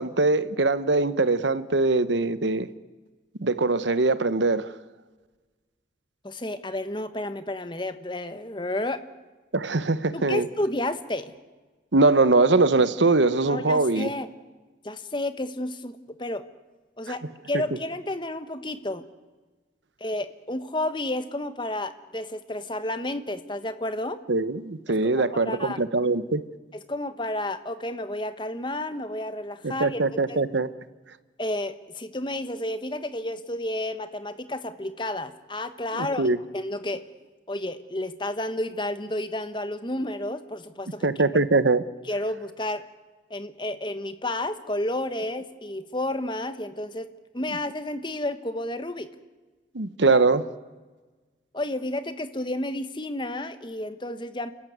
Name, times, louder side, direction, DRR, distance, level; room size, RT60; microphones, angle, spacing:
voice 1, 0.0-2.7 3.4-4.7 9.5-10.5 11.9-14.1 24.3-26.4 29.6-30.7 35.9-36.4 41.0-41.8 49.7-50.4, right 3 dB, 80° right, 1.0 m, -22 dB
voice 2, 6.2-9.0 10.1-11.3 13.5-14.3 14.8-16.4 17.0-17.2 17.5-19.0 20.0-24.2 25.0-25.8 26.9-30.0 30.3-30.4 31.4-37.0 37.5-41.1 42.1-42.8 43.3-47.1 47.3-49.1 50.1-50.2 51.5-54.5, left 1 dB, 25° left, 1.2 m, -31 dB
30.0 x 14.5 x 9.5 m
head